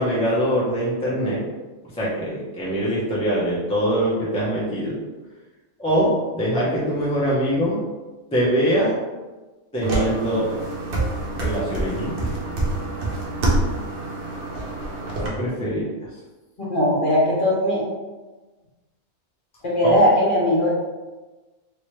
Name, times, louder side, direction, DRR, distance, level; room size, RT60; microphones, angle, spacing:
voice 1, 0.0-1.4 1.9-5.0 5.8-7.8 8.3-8.9 9.7-10.5 11.3-12.4 15.2-16.1 19.8-19.9, equal, 5° left, -7 dB, 0.5 m, -23 dB
sound 1, 9.8-15.3, right 2 dB, 50° right, 0.8 m, -26 dB
voice 2, 16.7-17.8 19.6-20.7, left 1 dB, 40° left, -7 dB, 1.3 m, -19 dB
3.1 x 3.0 x 3.1 m, 1.2 s
omnidirectional pair, 1.5 m